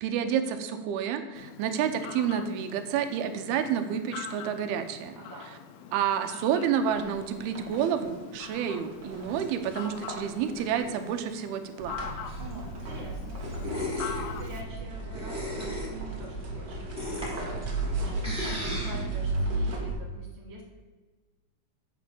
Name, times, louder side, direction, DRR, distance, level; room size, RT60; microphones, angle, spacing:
voice 1, 0.0-5.1 5.9-12.0, right 8 dB, 85° right, 8 dB, 2.7 m, -29 dB
Fowl, 1.4-14.6, left 8 dB, 80° left, 2.4 m, -44 dB
voice 2, 5.1-5.5 12.4-20.6, right 1 dB, 20° right, -3 dB, 0.5 m, -45 dB
sound 1, 6.7-11.3 12.0-19.8, equal, 60° right, 1.1 m, -43 dB
sound 2, 11.8-19.9, right 1 dB, ahead, 2.4 m, -33 dB
8.6 x 5.1 x 7.0 m, 1.3 s
omnidirectional pair, 4.4 m